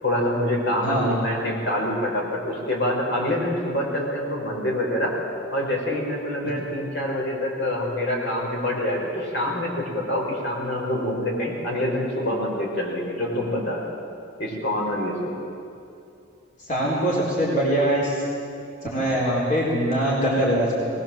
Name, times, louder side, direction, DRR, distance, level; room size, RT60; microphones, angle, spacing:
voice 1, 0.0-5.2 5.5-13.9 14.4-15.3, left 1 dB, 60° left, -2 dB, 5.4 m, -26 dB
voice 2, 0.8-1.1 16.6-18.2 18.9-20.9, right 1 dB, 40° left, -5 dB, 4.4 m, -22 dB
22.5 x 20.0 x 7.5 m, 2.6 s
head